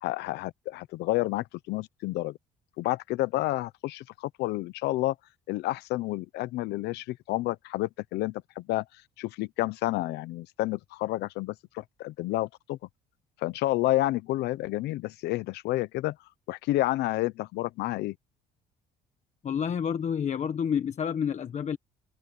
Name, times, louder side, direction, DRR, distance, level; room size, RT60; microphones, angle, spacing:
voice 1, 0.0-2.4 2.8-5.1 5.5-8.8 9.2-12.8 13.4-16.2 16.5-18.2, left 17 dB, 85° left, 0.8 m, -30 dB
voice 2, 19.4-21.8, left 7 dB, 45° left, 1.4 m, -29 dB
cardioid pair, 110°, 17 cm